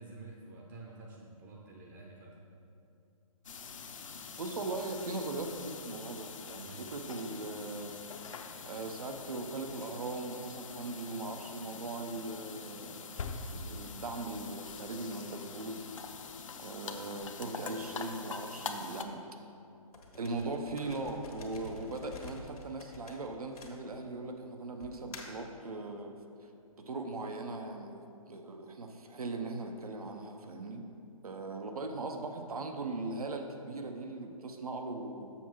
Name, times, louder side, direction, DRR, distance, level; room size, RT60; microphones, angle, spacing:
voice 1, 0.0-2.4 6.6-6.9, right 3 dB, 30° right, -1 dB, 0.7 m, -49 dB
sound 1, 3.4-19.0, left 5 dB, 60° left, 0.7 m, -44 dB
voice 2, 4.4-8.0 8.6-13.1 13.5-15.9 16.6-19.2 20.1-26.2 26.8-30.9 31.2-35.3, right 2 dB, 85° right, 4 dB, 0.9 m, -39 dB
sound 2, 19.9-24.2 24.8-25.5, left 2 dB, 85° left, 1.5 m, -48 dB
7.1 x 5.9 x 4.5 m, 2.7 s
hypercardioid pair, 150°, 19 cm